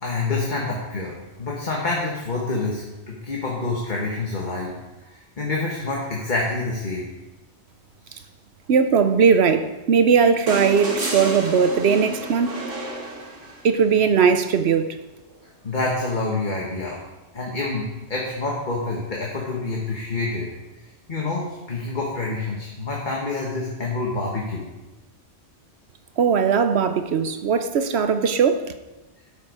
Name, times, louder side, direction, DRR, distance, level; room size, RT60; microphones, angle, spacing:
voice 1, 0.0-4.7 5.1-7.1 8.0-8.2 15.6-17.0 17.3-20.5 20.8-24.7, left 3 dB, 40° left, -3 dB, 1.5 m, -27 dB
voice 2, 8.7-12.5 13.6-15.0 26.2-28.7, right 6 dB, 65° right, 10 dB, 0.9 m, -19 dB
sound 1, 10.5-13.8 15.3-15.4, right 1 dB, 85° right, 2.1 m, -31 dB
12.5 x 6.7 x 4.9 m, 1.1 s
omnidirectional pair, 1.2 m